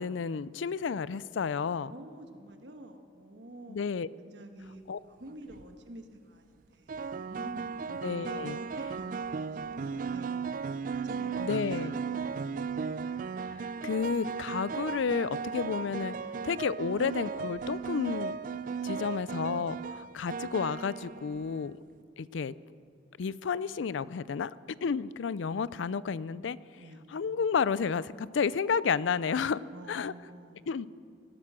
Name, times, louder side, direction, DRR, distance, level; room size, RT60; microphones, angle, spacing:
voice 1, 0.0-1.9 3.7-4.1 4.9-5.0 8.0-8.6 11.4-11.9 13.8-16.1 16.4-18.4 18.8-21.7 22.2-22.5 23.2-24.5 24.8-26.6 27.1-29.6 29.9-30.1 30.7-30.9, left 6 dB, 75° left, 19 dB, 0.4 m, -31 dB
voice 2, 1.9-7.8 8.4-10.5 10.8-12.6 26.8-27.1 29.7-30.8, right 1 dB, 65° right, 6 dB, 1.4 m, -49 dB
sound 1, 5.3-5.6 6.9-21.7, right 5 dB, 45° right, 0.3 m, -36 dB
17.5 x 12.5 x 6.2 m, 2.3 s
head